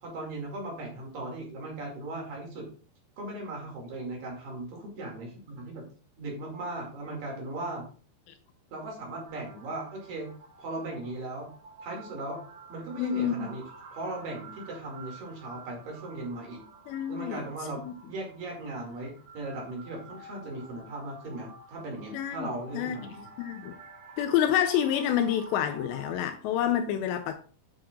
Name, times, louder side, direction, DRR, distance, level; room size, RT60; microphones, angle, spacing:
voice 1, 0.0-2.7 3.2-5.9 6.2-7.8 8.7-10.3 10.6-11.5 11.8-12.4 12.7-13.6 13.9-16.6 17.1-23.3, right 2 dB, 55° right, 3.6 m, -38 dB
sound 1, 9.3-26.2, right 3 dB, 70° right, 4.1 m, -50 dB
voice 2, 13.0-13.5 16.9-17.5 17.8-17.9 22.1-23.0 23.4-23.7 24.2-27.4, left 10 dB, 85° left, 2.7 m, -28 dB
9.5 x 7.7 x 2.4 m
omnidirectional pair, 5.4 m